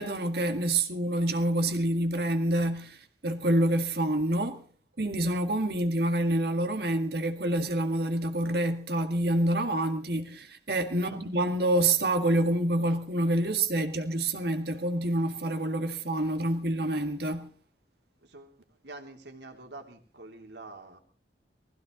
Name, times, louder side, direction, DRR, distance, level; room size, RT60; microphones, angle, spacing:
voice 1, 0.0-3.0 3.2-4.6 5.0-17.5, right 1 dB, 60° right, 1.9 m, -27 dB
voice 2, 18.2-21.0, right 2 dB, 75° right, 3.1 m, -47 dB
20.0 x 15.5 x 3.9 m
head